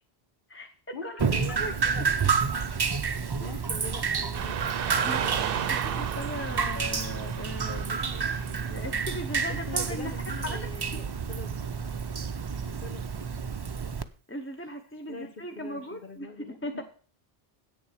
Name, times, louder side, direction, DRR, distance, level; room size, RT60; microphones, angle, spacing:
voice 1, 0.9-2.0 3.0-4.7 7.9-8.3 9.5-11.5 12.8-13.0 15.1-16.8, left 3 dB, 50° left, 6 dB, 1.6 m, -43 dB
Drip, 1.2-14.0, right 5 dB, 35° right, 0.4 m, -30 dB
voice 2, 1.5-1.9 3.4-3.6 5.0-8.3 8.6-10.9 14.3-16.8, left 1 dB, 15° left, 4 dB, 0.7 m, -38 dB
Car passing by / Traffic noise roadway noise, 4.3-13.4, right 9 dB, 65° right, 0.8 m, -36 dB
8.5 x 7.0 x 6.5 m, 0.41 s
omnidirectional pair, 1.1 m